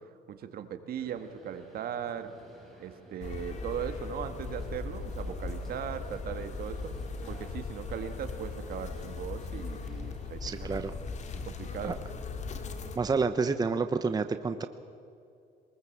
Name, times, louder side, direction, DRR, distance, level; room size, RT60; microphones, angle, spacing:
voice 1, 0.0-2.3 2.8-6.9 7.3-11.0 11.4-12.0, right 8 dB, 65° right, 9 dB, 1.8 m, -38 dB
sound 1, 1.0-12.1, right 1 dB, ahead, 6.4 m, -55 dB
sound 2, 3.2-13.0, left 4 dB, 45° left, 2.1 m, -38 dB
voice 2, 10.4-10.9 11.8-11.9 13.0-14.7, right 4 dB, 25° right, 9 dB, 0.8 m, -29 dB
23.0 x 21.0 x 7.4 m, 2.6 s
cardioid pair, 110°, 17 cm